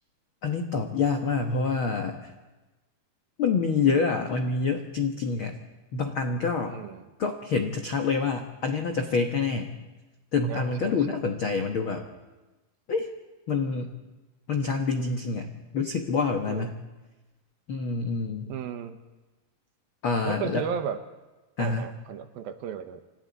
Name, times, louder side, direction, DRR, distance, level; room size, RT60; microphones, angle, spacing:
voice 1, 0.4-2.3 3.4-5.5 5.9-6.8 7.2-9.7 10.3-12.1 12.9-13.1 13.5-13.9 14.5-16.8 17.7-18.5 20.0-20.6 21.6-21.9, left 4 dB, 80° left, 4 dB, 1.1 m, -27 dB
voice 2, 6.7-7.0 10.5-11.0 16.5-16.7 18.5-19.0 20.2-21.0 21.6-23.0, right 8 dB, 75° right, 8 dB, 2.7 m, -34 dB
29.0 x 27.0 x 4.1 m, 1.2 s
omnidirectional pair, 4.5 m